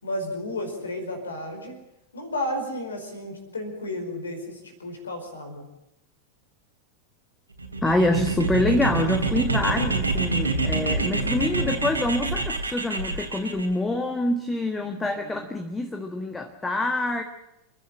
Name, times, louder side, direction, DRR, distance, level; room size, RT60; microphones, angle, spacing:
voice 1, 0.0-1.8 2.1-5.6, left 1 dB, 70° left, 5 dB, 5.2 m, -32 dB
sound 1, 7.6-13.7, right 3 dB, 80° right, 3.0 m, -26 dB
voice 2, 7.8-17.2, left 2 dB, 10° left, 6 dB, 1.6 m, -26 dB
29.0 x 11.0 x 10.0 m, 0.90 s
figure-of-eight pair, 90°, 0 cm